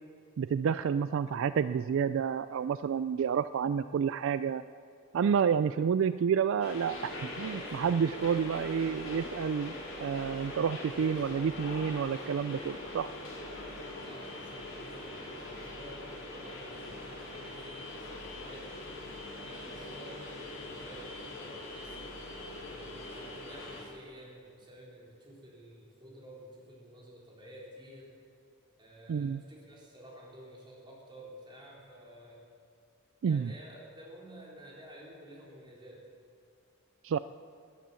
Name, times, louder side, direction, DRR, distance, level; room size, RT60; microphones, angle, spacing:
voice 1, 0.4-4.6 5.1-9.7 10.0-13.1 29.1-29.4 33.2-33.5 37.0-37.2, right 7 dB, 65° right, 13 dB, 0.3 m, -29 dB
sound 1, 6.6-23.8, left 1 dB, 65° left, 4.8 m, -42 dB
voice 2, 14.0-18.8 19.4-22.1 22.5-28.1 28.8-32.4 33.2-36.0, equal, 20° right, -4 dB, 3.8 m, -51 dB
18.0 x 10.5 x 7.0 m, 2.3 s
head